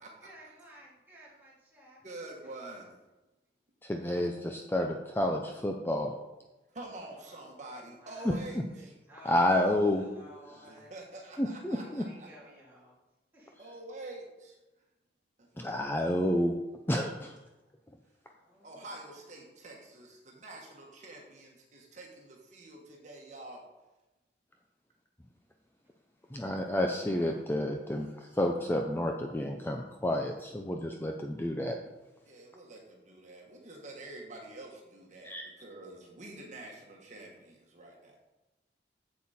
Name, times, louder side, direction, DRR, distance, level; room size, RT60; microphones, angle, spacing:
voice 1, 0.2-2.0 7.2-7.7 8.0-10.9 11.7-12.9 13.3-13.5 18.3-19.1 27.0-27.5, right 1 dB, 10° right, -7 dB, 3.1 m, -54 dB
voice 2, 2.0-3.0 6.7-8.9 10.6-12.5 13.6-14.6 15.4-15.5 18.6-23.6 32.2-38.2, right 2 dB, 45° right, -1 dB, 1.5 m, -47 dB
voice 3, 3.8-6.1 8.3-8.4 9.2-10.0 11.4-12.0 15.6-16.6 16.9-17.3 26.3-31.8 35.2-35.4, left 1 dB, 15° left, 2 dB, 0.6 m, -30 dB
8.4 x 7.6 x 4.3 m, 1.0 s
head